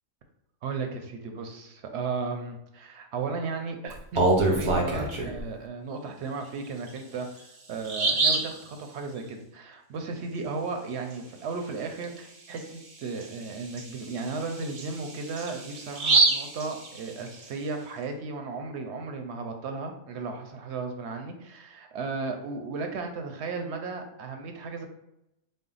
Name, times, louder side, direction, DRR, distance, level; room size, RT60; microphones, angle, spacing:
voice 1, 0.6-7.3 7.7-24.9, right 4 dB, 65° right, 4 dB, 0.8 m, -35 dB
Bird vocalization bird call bird song, 3.9-5.4 6.9-7.0 7.4-7.5 7.8-8.6 12.0-12.2 12.6-12.7 13.2-17.4, right 3 dB, 40° right, 0.4 m, -26 dB
4.4 x 2.0 x 3.8 m, 0.84 s
omnidirectional pair, 1.3 m